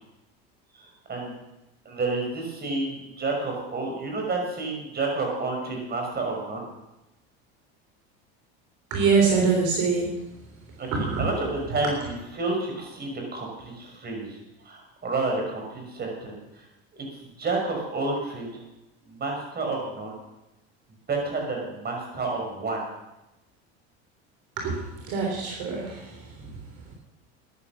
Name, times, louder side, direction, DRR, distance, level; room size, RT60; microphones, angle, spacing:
voice 1, 0.8-1.3 1.8-6.6 10.8-14.4 14.6-16.3 17.4-18.6 19.1-20.2 21.1-22.8, right 3 dB, 30° right, 1 dB, 6.0 m, -30 dB
voice 2, 8.9-10.2 10.9-11.3 24.6-26.9, right 4 dB, 65° right, 0 dB, 3.7 m, -25 dB
14.5 x 10.5 x 6.1 m, 0.97 s
supercardioid pair, 100°, 31 cm